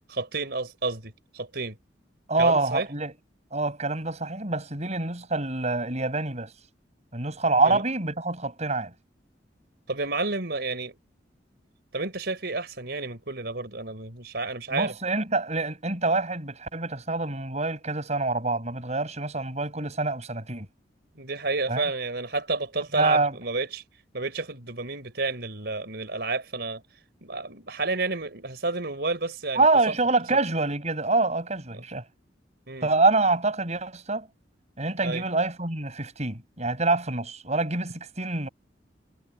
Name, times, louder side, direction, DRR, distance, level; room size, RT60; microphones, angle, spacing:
voice 1, 0.1-1.7 2.4-2.9 7.6-7.8 9.9-11.0 11.9-14.9 21.1-23.8 24.1-26.8 27.2-29.9 31.7-31.8 32.7-32.9 35.0-35.2, right 3 dB, 60° right, 5.0 m, -30 dB
voice 2, 2.3-3.1 3.5-6.5 7.1-8.9 14.7-20.7 21.7-21.8 22.9-23.3 29.5-32.0 32.8-34.3 34.8-38.5, right 3 dB, 40° right, 7.8 m, -26 dB
head